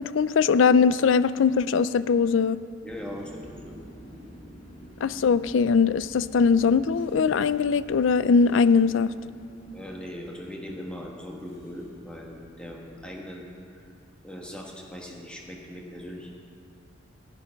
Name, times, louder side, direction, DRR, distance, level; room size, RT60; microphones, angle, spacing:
voice 1, 0.0-2.6 5.0-9.1, left 5 dB, 70° left, 16 dB, 0.4 m, -21 dB
voice 2, 2.8-3.7 9.7-13.8 14.2-16.3, equal, 5° left, -1 dB, 1.2 m, -40 dB
sound 1, 2.9-12.8, equal, 35° left, 2.4 m, -49 dB
15.0 x 9.0 x 5.7 m, 2.4 s
head